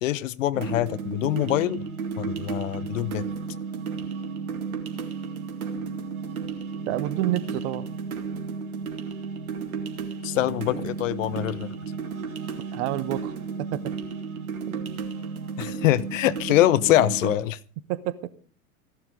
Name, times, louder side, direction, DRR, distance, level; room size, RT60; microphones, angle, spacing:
voice 1, 0.0-1.8 2.2-3.2 10.2-11.7 15.6-17.6, left 14 dB, 60° left, 0.9 m, -24 dB
sound 1, 0.5-17.4, right 5 dB, 70° right, 2.3 m, -33 dB
voice 2, 6.9-7.9 12.7-13.3 13.7-13.8 14.7-14.8 17.9-18.3, right 15 dB, 50° right, 1.3 m, -28 dB
15.5 x 11.5 x 5.0 m
figure-of-eight pair, 90°, 44 cm